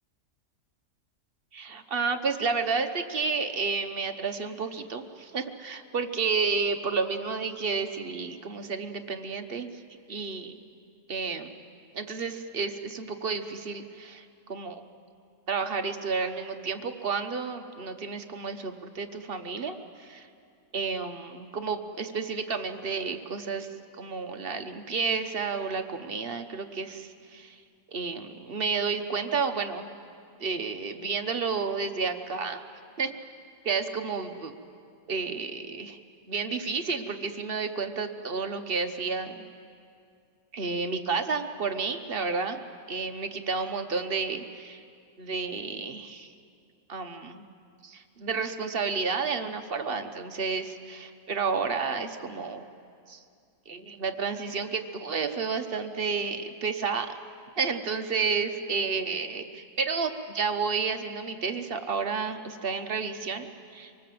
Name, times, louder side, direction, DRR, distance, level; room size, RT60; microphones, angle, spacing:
voice 1, 1.5-9.8 10.1-10.6 11.1-11.5 11.9-14.8 15.5-20.3 20.7-23.7 24.0-27.6 27.9-29.9 30.4-32.6 33.0-33.1 33.6-34.5 35.1-36.0 36.3-39.4 40.5-42.6 42.9-44.8 45.2-46.3 46.9-47.4 47.8-52.6 53.1-53.2 53.7-57.2 57.6-63.5 63.7-63.9, right 5 dB, 40° right, 7 dB, 1.0 m, -31 dB
25.0 x 19.0 x 7.7 m, 2.3 s
omnidirectional pair, 1.7 m